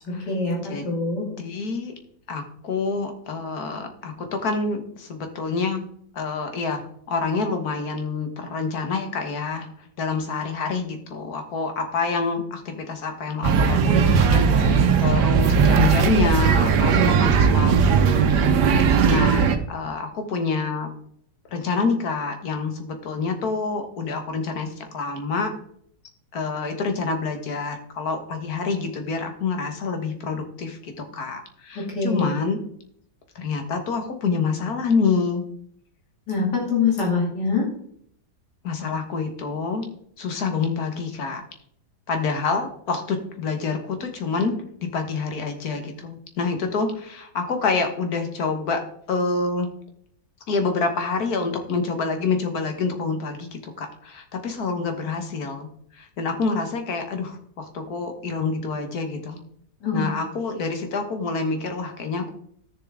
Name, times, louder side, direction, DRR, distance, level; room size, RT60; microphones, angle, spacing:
voice 1, 0.1-1.2 31.7-32.3 36.3-37.7 59.8-60.0, left 4 dB, 85° left, -2 dB, 3.1 m, -24 dB
voice 2, 1.4-1.9 2.3-5.9 6.1-6.8 7.1-9.7 10.0-18.4 19.1-20.9 21.5-25.5 26.3-32.6 33.4-35.5 38.6-39.9 40.2-41.4 42.1-48.8 49.1-49.7 50.5-59.4 59.9-62.3, left 4 dB, 65° left, 6 dB, 1.9 m, -27 dB
sound 1, 13.4-19.6, right 6 dB, 85° right, 1.5 m, -18 dB
13.0 x 6.9 x 3.6 m, 0.66 s
omnidirectional pair, 1.7 m